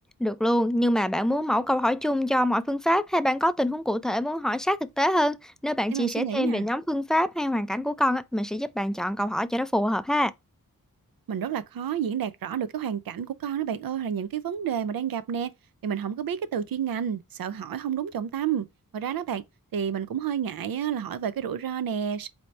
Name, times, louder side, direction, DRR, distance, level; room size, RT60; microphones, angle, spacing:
voice 1, 0.2-10.3, equal, ahead, 0.3 m, -25 dB
voice 2, 5.9-6.7 11.3-15.5 15.8-18.7 18.9-19.4 19.7-22.3, right 8 dB, 75° right, 0.5 m, -30 dB
4.4 x 2.8 x 3.1 m
cardioid pair, 55°, 35 cm